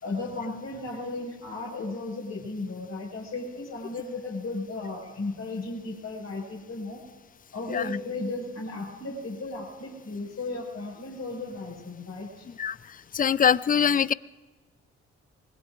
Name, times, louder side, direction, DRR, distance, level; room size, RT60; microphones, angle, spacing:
voice 1, 0.0-7.0 7.5-12.5, left 3 dB, 50° left, -1 dB, 5.4 m, -35 dB
voice 2, 13.1-14.1, left 7 dB, 25° left, 20 dB, 0.4 m, -22 dB
25.0 x 20.5 x 2.5 m, 1.3 s
hypercardioid pair, 45°, 35 cm